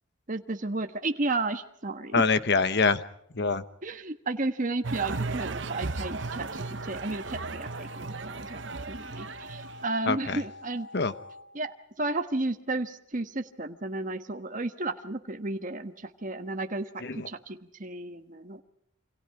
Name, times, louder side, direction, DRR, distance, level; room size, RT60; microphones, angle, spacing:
voice 1, 0.3-2.2 3.8-10.9 11.5-18.6, right 2 dB, 40° right, 7 dB, 1.3 m, -33 dB
voice 2, 2.1-3.0 3.3-3.6 10.1-10.4 10.9-11.1 17.0-17.3, left 4 dB, 55° left, 13 dB, 1.1 m, -25 dB
sound 1, 4.8-9.9, right 3 dB, 65° right, 0.8 m, -36 dB
sound 2, 5.8-11.4, left 3 dB, 80° right, 2.4 m, -47 dB
28.0 x 26.0 x 4.8 m, 0.74 s
head